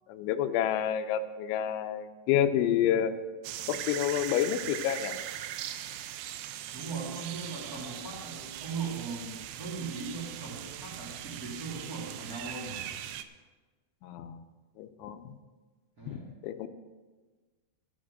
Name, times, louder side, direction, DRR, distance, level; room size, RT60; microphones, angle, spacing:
voice 1, 0.1-3.1 3.7-5.2 14.0-14.4 14.8-15.4 16.1-16.2 16.4-16.7, left 10 dB, 80° left, 7 dB, 3.0 m, -29 dB
sound 1, 3.4-13.2, right 12 dB, 80° right, 2.6 m, -40 dB
voice 2, 6.7-12.9 16.0-16.3, right 4 dB, 30° right, -6 dB, 1.7 m, -39 dB
12.5 x 7.5 x 6.3 m, 1.3 s
omnidirectional pair, 5.5 m